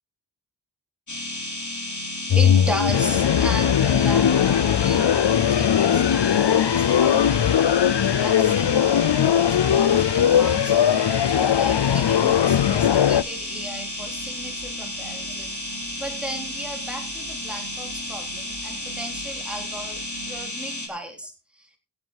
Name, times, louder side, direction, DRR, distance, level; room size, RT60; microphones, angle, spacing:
sound 1, 1.1-20.9, left 1 dB, 45° left, 3.6 m, -33 dB
sound 2, 2.3-13.2, left 9 dB, 85° left, 0.6 m, -19 dB
voice 1, 2.3-7.6 8.2-15.5 16.0-21.8, equal, ahead, 3 dB, 3.6 m, -36 dB
sound 3, 2.5-20.4, right 5 dB, 60° right, 3.4 m, -47 dB
16.5 x 7.3 x 4.6 m, 0.31 s
wide cardioid pair, 60°, 41 cm